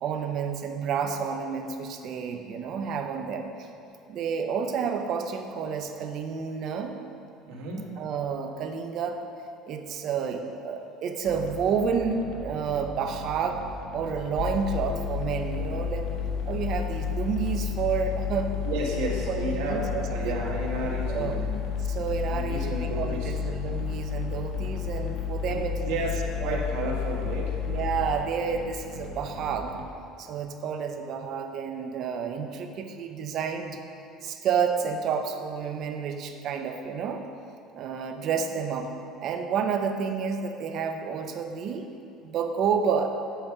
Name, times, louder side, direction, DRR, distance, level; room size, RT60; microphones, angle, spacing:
voice 1, 0.0-3.7 4.1-7.0 8.0-9.2 9.7-13.6 13.9-16.1 16.5-18.6 19.3-20.4 21.1-21.4 21.8-25.9 26.4-26.6 27.7-29.8 30.2-37.2 37.7-38.9 39.2-41.9 42.2-43.1, right 6 dB, 45° right, 6 dB, 0.6 m, -30 dB
voice 2, 7.5-8.0 18.6-21.6 22.3-23.3 25.5-27.6, right 1 dB, 85° right, -2 dB, 1.6 m, -32 dB
sound 1, 11.3-29.9, left 2 dB, 70° left, 1.1 m, -41 dB
sound 2, 14.4-28.1, left 8 dB, 50° left, 0.5 m, -31 dB
7.9 x 4.9 x 5.9 m, 2.5 s
cardioid pair, 155°, 0 cm